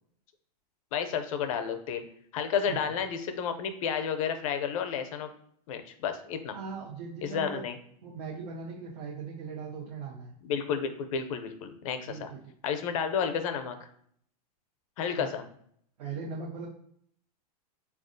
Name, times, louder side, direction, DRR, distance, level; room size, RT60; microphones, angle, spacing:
voice 1, 0.9-2.0 2.3-5.3 5.7-6.6 7.2-7.8 10.4-12.3 12.6-13.8 15.0-15.5, left 7 dB, 55° left, 8 dB, 0.5 m, -31 dB
voice 2, 6.5-7.6 8.0-10.3 12.1-12.4 15.1-15.3 16.0-16.7, right 5 dB, 75° right, -3 dB, 0.8 m, -39 dB
4.1 x 2.4 x 2.6 m, 0.65 s
supercardioid pair, 160°, 20 cm